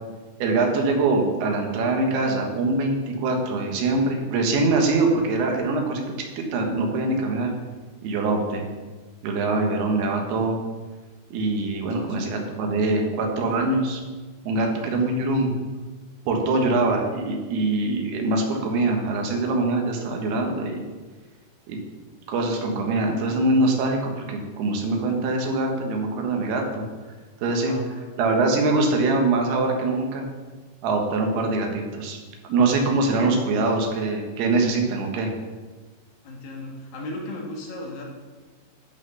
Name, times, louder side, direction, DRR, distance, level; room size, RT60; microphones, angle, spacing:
voice 1, 0.4-6.0 6.4-7.5 8.0-8.7 9.2-10.6 11.3-14.0 14.4-15.5 16.3-20.8 21.7-21.8 22.3-26.8 27.4-27.8 28.2-30.3 30.8-32.2 32.4-35.3, right 2 dB, 85° right, 2 dB, 3.4 m, -23 dB
voice 2, 27.5-28.1 36.2-38.1, left 1 dB, 70° left, -1 dB, 3.2 m, -36 dB
12.5 x 5.5 x 5.6 m, 1.3 s
omnidirectional pair, 4.4 m